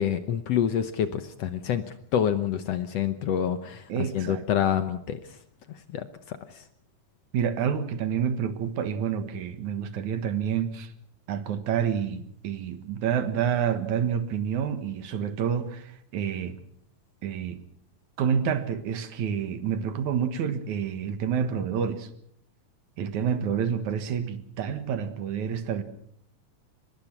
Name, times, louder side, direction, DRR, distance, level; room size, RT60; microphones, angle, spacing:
voice 1, 0.0-1.8 2.1-5.2 5.9-6.6, left 9 dB, 65° left, 11 dB, 1.8 m, -27 dB
voice 2, 3.9-4.4 7.3-10.9 11.3-16.6 17.2-17.6 18.2-22.1 23.0-25.8, right 8 dB, 70° right, 10 dB, 2.8 m, -28 dB
24.0 x 21.0 x 6.0 m, 0.66 s
omnidirectional pair, 3.6 m